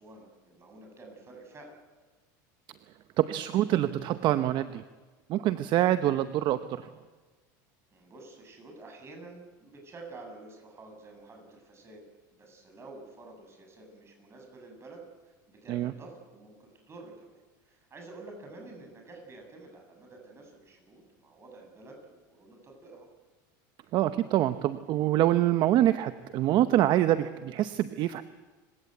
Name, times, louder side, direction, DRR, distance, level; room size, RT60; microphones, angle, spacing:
voice 1, 0.0-1.8 7.9-12.0 12.4-23.1, right 2 dB, 25° right, 3 dB, 7.9 m, -49 dB
voice 2, 3.2-4.8 5.3-6.9 15.7-15.9 23.9-28.2, right 13 dB, 50° right, 11 dB, 0.9 m, -25 dB
28.5 x 17.0 x 8.1 m, 1.3 s
supercardioid pair, 115°, 10 cm